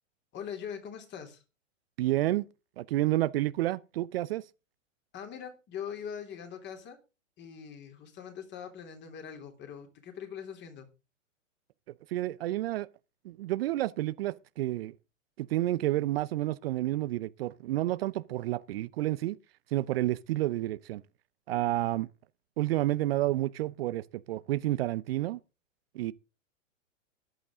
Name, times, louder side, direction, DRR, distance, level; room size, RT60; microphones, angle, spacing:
voice 1, 0.3-1.4 5.1-7.0 7.4-10.9, left 8 dB, 30° left, 3.3 m, -42 dB
voice 2, 2.0-2.4 2.8-4.5 12.1-12.9 13.2-14.9 15.4-19.4 19.7-21.0 21.5-22.1 22.6-25.4 25.9-26.1, right 15 dB, 50° right, 0.7 m, -30 dB
14.0 x 11.0 x 3.7 m
hypercardioid pair, 120°, 39 cm